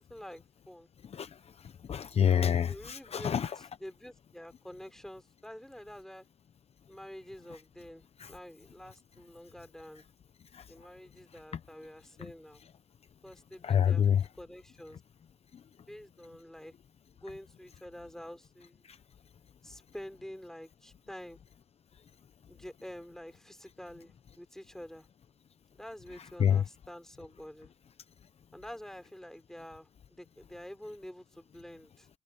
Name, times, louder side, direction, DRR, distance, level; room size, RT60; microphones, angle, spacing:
voice 1, 0.0-0.9 2.1-3.3 3.8-6.2 6.9-10.0 10.7-12.6 13.2-14.1 14.4-15.0 15.9-16.7 17.1-18.8 19.6-21.4 22.5-25.1 25.7-27.7 28.5-32.1, equal, 5° left, 3.8 m, -47 dB
voice 2, 1.0-3.6 7.5-7.6 8.2-8.3 10.0-10.1 10.5-10.9 11.3-11.4 12.2-12.3 13.6-14.3 15.5-15.6 18.8-19.0 26.2-26.6, left 8 dB, 35° left, 0.8 m, -29 dB
cardioid pair, 110°, 17 cm